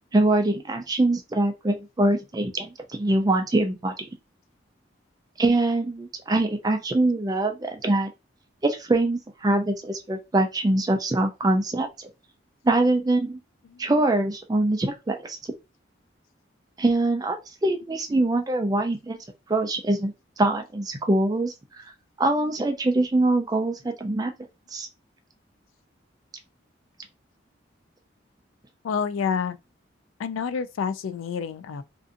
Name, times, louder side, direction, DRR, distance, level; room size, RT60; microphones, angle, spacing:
voice 1, 0.1-4.1 5.4-8.1 8.6-12.1 12.6-13.4 13.8-15.4 16.8-19.2 19.5-21.5 22.2-24.3 24.7-24.9, right 2 dB, 20° right, 0.3 m, -23 dB
voice 2, 28.8-29.6 30.2-31.8, left 6 dB, 90° left, 0.3 m, -28 dB
2.5 x 2.5 x 2.4 m
head